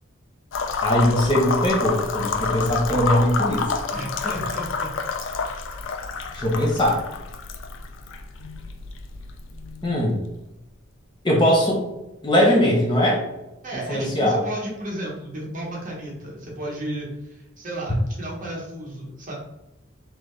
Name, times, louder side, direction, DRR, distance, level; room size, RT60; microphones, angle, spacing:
sound 1, 0.5-10.3, left 4 dB, 70° left, 0.4 m, -29 dB
voice 1, 0.8-3.7 6.3-7.0 9.8-10.2 11.2-11.8 12.2-13.2 13.7-14.4, equal, 20° left, -2 dB, 0.7 m, -20 dB
voice 2, 3.9-4.9 13.6-19.3, right 1 dB, 40° right, -3 dB, 1.1 m, -33 dB
3.9 x 3.0 x 3.2 m, 0.97 s
head